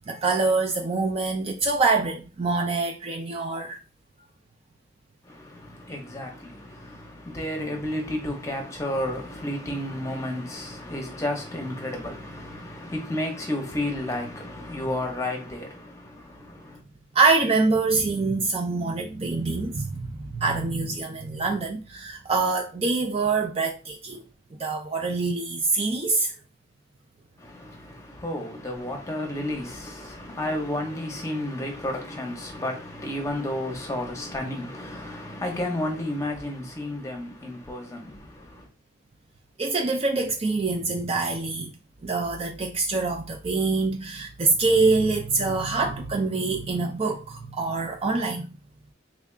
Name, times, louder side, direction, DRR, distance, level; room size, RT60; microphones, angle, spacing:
voice 1, 0.1-3.8 17.1-24.2 24.6-26.3 39.6-41.7 42.0-48.6, right 3 dB, 30° right, 0.3 m, -25 dB
voice 2, 5.2-16.8 27.4-38.7, left 1 dB, 15° left, 0.7 m, -32 dB
3.6 x 3.3 x 2.4 m
head